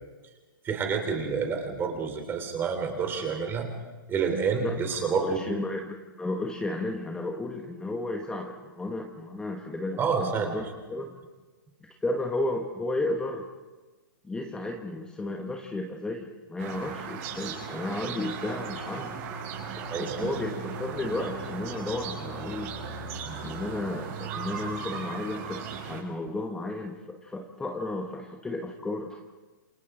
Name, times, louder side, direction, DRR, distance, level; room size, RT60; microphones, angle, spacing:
voice 1, 0.6-3.7 4.1-5.4 10.0-10.5 18.0-18.1 19.9-20.3 23.3-23.4, right 5 dB, 20° right, 4 dB, 3.7 m, -29 dB
voice 2, 4.6-11.2 12.0-13.5 14.2-19.2 20.0-22.7 23.4-29.2, left 2 dB, 5° left, 3 dB, 1.3 m, -33 dB
sound 1, 16.6-26.0, right 6 dB, 45° right, 6.2 m, -37 dB
28.5 x 26.0 x 3.9 m, 1.2 s
hypercardioid pair, 140°, 11 cm